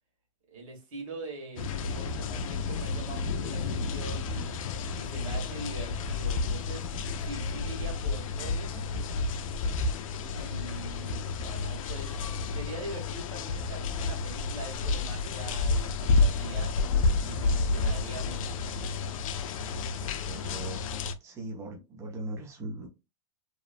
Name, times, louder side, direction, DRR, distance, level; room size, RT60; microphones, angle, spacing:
voice 1, 0.5-4.5 5.0-6.9 7.2-8.9 10.2-12.2 12.5-16.7 17.2-18.6, right 2 dB, 85° right, 1.4 m, -43 dB
sound 1, 1.6-21.1, left 4 dB, 80° left, 0.4 m, -30 dB
voice 2, 20.0-20.9 21.2-22.9, right 1 dB, 15° right, 0.6 m, -40 dB
2.9 x 2.1 x 2.4 m
supercardioid pair, 160°, 17 cm